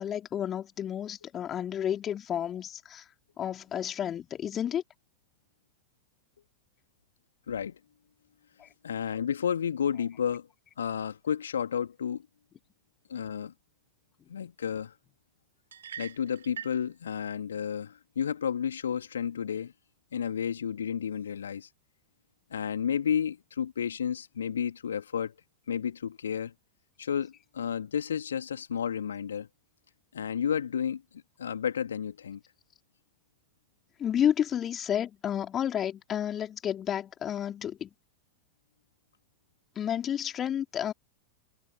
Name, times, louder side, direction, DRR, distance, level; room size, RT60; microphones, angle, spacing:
voice 1, 0.0-3.1 3.4-4.8 8.6-8.7 34.0-37.9 39.8-40.9, left 9 dB, 25° left, 4.3 m, -31 dB
voice 2, 7.5-7.8 8.8-10.5 10.8-12.2 13.1-13.5 14.3-14.9 16.0-19.7 20.1-21.7 22.5-25.3 25.7-26.5 27.0-29.5 30.1-31.0 31.4-32.4, left 8 dB, 65° left, 2.8 m, -31 dB
sound 1, 15.7-16.8, right 8 dB, 65° right, 3.3 m, -42 dB
figure-of-eight pair, 90°, 0 cm